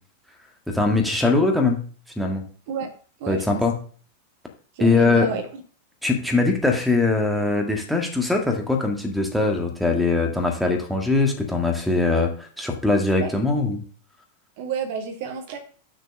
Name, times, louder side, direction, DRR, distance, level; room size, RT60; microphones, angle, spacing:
voice 1, 0.7-1.8 2.2-2.4 3.3-3.7 4.8-5.3 6.0-13.8, left 3 dB, ahead, 3 dB, 1.7 m, -21 dB
voice 2, 3.2-3.6 4.7-5.4 13.2-13.3 14.6-15.6, right 6 dB, 50° right, 5 dB, 1.4 m, -30 dB
6.6 x 4.5 x 6.7 m, 0.42 s
figure-of-eight pair, 90°, 0 cm